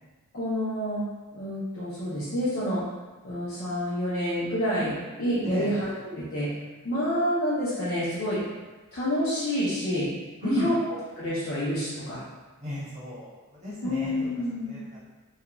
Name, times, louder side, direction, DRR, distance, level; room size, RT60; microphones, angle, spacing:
voice 1, 0.3-1.0 1.3-2.8 3.2-6.5 6.8-8.4 8.9-10.1 10.4-10.7 11.2-12.2 13.8-14.8, equal, 45° left, -11 dB, 0.6 m, -28 dB
voice 2, 5.4-5.8 10.4-10.7 12.6-13.3 13.6-14.3 14.7-15.0, equal, 30° right, -9 dB, 1.1 m, -31 dB
2.4 x 2.3 x 3.0 m, 1.3 s
head